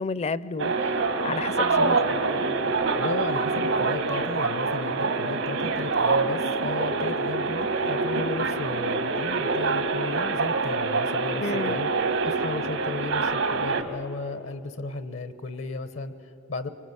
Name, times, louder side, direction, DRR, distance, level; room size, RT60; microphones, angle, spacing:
voice 1, 0.0-2.0 11.4-11.8, left 3 dB, 35° left, 18 dB, 0.5 m, -31 dB
sound 1, 0.6-13.8, right 3 dB, 85° right, 1.5 m, -25 dB
voice 2, 2.9-11.9 12.2-16.7, left 3 dB, 70° left, 12 dB, 1.0 m, -35 dB
24.5 x 24.5 x 8.0 m, 2.9 s
head